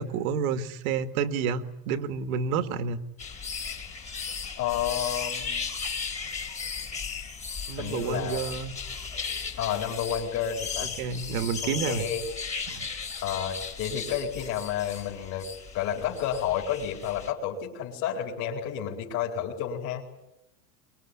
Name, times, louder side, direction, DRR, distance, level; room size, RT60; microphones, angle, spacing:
voice 1, 0.0-3.0 7.7-8.7 10.8-12.1 12.7-12.9, right 6 dB, 65° right, 8 dB, 2.2 m, -29 dB
sound 1, 3.2-17.3, left 5 dB, 15° left, 2.6 m, -36 dB
voice 2, 4.6-5.6 7.8-8.4 9.6-10.9 11.6-12.2 13.2-15.5 15.7-20.0, left 9 dB, 40° left, -2 dB, 4.4 m, -30 dB
24.0 x 23.0 x 9.9 m, 0.91 s
supercardioid pair, 160°, 45 cm